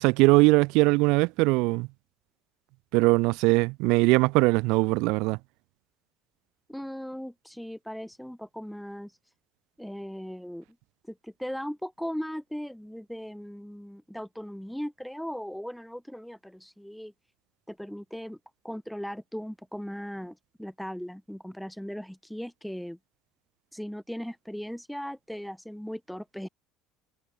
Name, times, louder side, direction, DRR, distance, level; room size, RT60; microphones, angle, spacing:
voice 1, 0.0-1.9 2.9-5.4, right 26 dB, 75° right, 0.8 m, -21 dB
voice 2, 6.7-9.2 9.8-10.6 11.1-17.1 17.7-18.4 18.6-23.0 23.7-26.5, equal, ahead, 2.4 m, -38 dB
cardioid pair, 145°, 0 cm